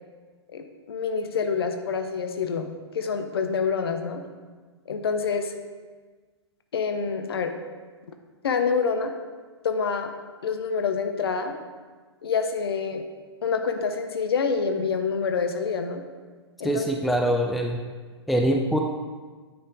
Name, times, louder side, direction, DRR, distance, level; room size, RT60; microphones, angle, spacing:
voice 1, 0.5-2.7 2.9-4.2 4.9-5.5 6.7-7.5 8.4-9.1 9.6-10.1 10.4-11.6 12.2-13.0 13.4-16.0 16.6-16.9, left 5 dB, 60° left, 6 dB, 0.8 m, -27 dB
voice 2, 16.6-17.8 18.3-18.8, equal, ahead, 2 dB, 0.4 m, -23 dB
9.3 x 4.3 x 3.9 m, 1.4 s
figure-of-eight pair, 110°, 14 cm